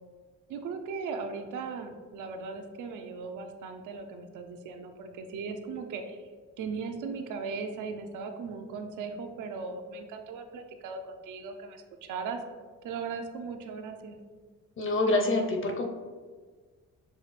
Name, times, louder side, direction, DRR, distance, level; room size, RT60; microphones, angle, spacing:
voice 1, 0.5-6.2 6.6-12.4 12.8-14.2, right 5 dB, 80° right, 5 dB, 0.6 m, -38 dB
voice 2, 14.8-15.8, left 2 dB, 45° left, 3 dB, 0.8 m, -26 dB
6.7 x 2.4 x 3.3 m, 1.5 s
cardioid pair, 90°, 30 cm